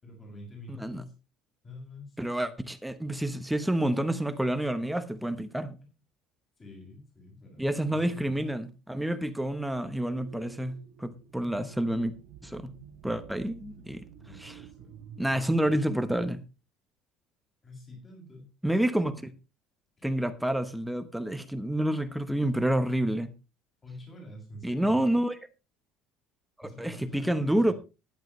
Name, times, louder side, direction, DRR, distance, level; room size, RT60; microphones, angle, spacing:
voice 1, 0.0-1.1 1.6-2.2 5.2-5.5 6.6-8.4 10.4-10.6 11.4-11.7 14.2-14.9 17.6-18.5 20.0-20.1 23.8-25.0 26.6-27.7, left 2 dB, 25° left, 6.6 m, -47 dB
voice 2, 0.7-1.0 2.2-5.7 7.6-12.1 12.4-12.7 13.0-14.1 14.4-14.6 15.2-16.4 18.6-19.3 20.0-23.3 24.6-25.4 26.6-27.7, right 1 dB, 5° right, 1.0 m, -28 dB
sound 1, 9.9-16.2, right 7 dB, 60° right, 1.1 m, -50 dB
14.5 x 10.5 x 3.2 m
cardioid pair, 145°, 0 cm